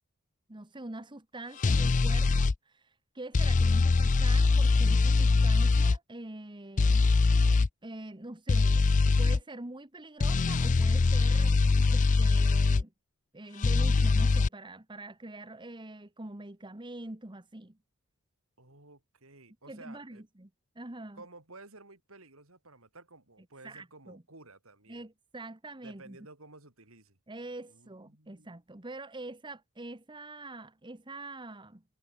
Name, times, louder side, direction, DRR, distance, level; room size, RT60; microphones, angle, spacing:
voice 1, 0.5-7.0 7.8-11.5 11.9-12.9 13.3-17.8 19.7-20.5 20.7-21.2 23.6-24.2 24.9-26.2 27.3-31.8, right 2 dB, 20° right, 1.3 m, -44 dB
sound 1, 1.6-2.5 3.3-6.0 6.8-7.7 8.5-9.4 10.2-12.8 13.6-14.5, left 3 dB, 35° left, 0.4 m, -23 dB
voice 2, 18.6-20.2 21.1-25.0 25.8-27.2 27.7-28.5, right 2 dB, 65° right, 5.0 m, -53 dB
head